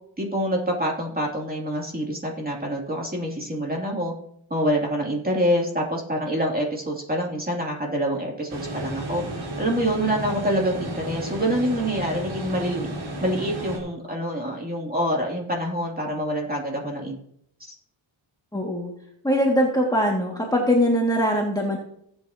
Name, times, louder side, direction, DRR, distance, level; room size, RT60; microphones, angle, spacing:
voice 1, 0.2-4.1 4.5-9.2 9.6-12.9 13.2-17.2 17.6-17.7, equal, 20° right, -1 dB, 3.0 m, -26 dB
sound 1, 8.5-13.8, right 1 dB, 70° right, 4.2 m, -33 dB
voice 2, 18.5-18.9 19.2-21.8, equal, 10° left, -2 dB, 2.2 m, -22 dB
17.5 x 8.8 x 3.0 m, 0.70 s
wide cardioid pair, 95°, 49 cm